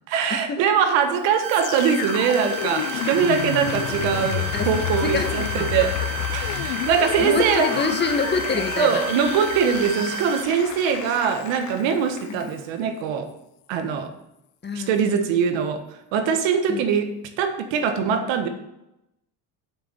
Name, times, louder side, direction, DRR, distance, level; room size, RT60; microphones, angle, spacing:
voice 1, 0.1-5.9 6.3-7.7 8.8-13.3 13.7-14.1 14.7-15.8 16.1-18.5, right 7 dB, 75° right, 7 dB, 1.6 m, -22 dB
Applause, 1.1-12.7, left 7 dB, 40° left, 1.3 m, -35 dB
sound 1, 1.4-10.4, right 10 dB, 45° right, 0.9 m, -33 dB
sound 2, 1.5-11.6 12.2-12.3, left 17 dB, 65° left, 0.5 m, -31 dB
voice 2, 5.0-5.9 7.0-9.0 12.3-12.5 14.6-14.9 16.7-16.9, left 4 dB, 25° left, 6 dB, 1.2 m, -27 dB
8.0 x 6.0 x 6.8 m, 0.86 s
cardioid pair, 110°, 45 cm